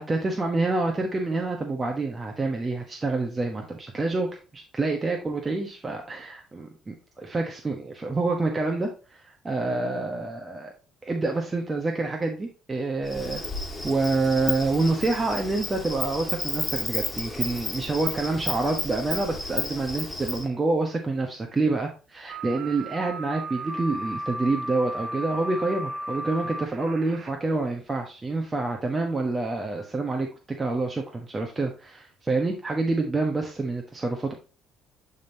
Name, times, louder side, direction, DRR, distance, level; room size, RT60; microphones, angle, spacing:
voice 1, 0.0-10.7 11.0-13.4 13.8-30.3 30.6-34.3, right 3 dB, 20° right, 2 dB, 1.1 m, -27 dB
Insect, 13.0-20.4, left 2 dB, 15° left, 1.9 m, -32 dB
sound 1, 22.3-27.3, right 1 dB, 45° right, 1.1 m, -35 dB
10.0 x 3.7 x 2.7 m, 0.34 s
cardioid pair, 105°, 0 cm